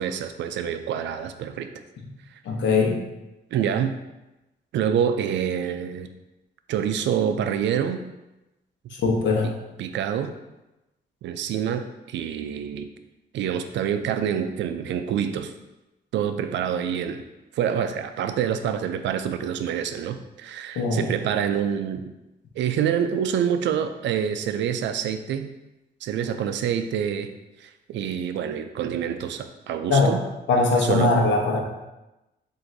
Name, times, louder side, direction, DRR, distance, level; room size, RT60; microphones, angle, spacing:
voice 1, 0.0-1.7 3.5-4.0 4.7-6.1 6.7-8.0 9.8-10.3 11.2-12.9 13.3-15.5 16.1-17.2 17.5-22.1 22.6-25.5 26.0-27.3 27.6-30.2 30.8-31.1, right 8 dB, 85° right, 9 dB, 0.4 m, -26 dB
voice 2, 2.4-3.0 8.9-9.5 20.8-21.1 29.9-30.2 30.5-31.6, left 3 dB, 85° left, 1 dB, 0.9 m, -21 dB
7.5 x 2.6 x 2.6 m, 1.0 s
cardioid pair, 130°, 18 cm